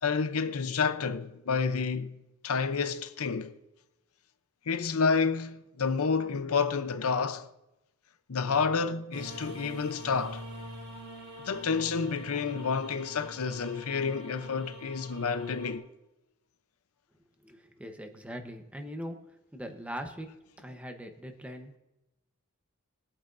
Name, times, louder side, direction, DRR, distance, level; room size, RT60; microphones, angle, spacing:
voice 1, 0.0-2.2 2.4-3.6 4.7-7.5 8.3-10.4 11.4-15.9, left 5 dB, 85° left, 0.7 m, -29 dB
sound 1, 9.1-15.8, right 1 dB, 90° right, 3.2 m, -45 dB
voice 2, 17.4-19.2 19.5-20.3 20.6-21.8, equal, 5° right, 0.9 m, -41 dB
21.5 x 8.7 x 2.6 m
head